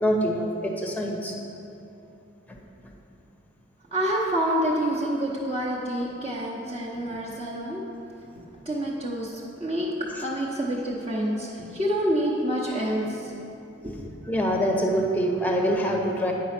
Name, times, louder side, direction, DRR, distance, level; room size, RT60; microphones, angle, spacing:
voice 1, 0.0-1.3 2.5-2.6 14.3-16.3, equal, 10° left, 1 dB, 0.7 m, -25 dB
voice 2, 3.9-7.8 8.7-9.9 10.2-13.3 13.8-13.9, right 1 dB, 30° right, -7 dB, 0.9 m, -27 dB
9.2 x 5.0 x 5.9 m, 2.9 s
head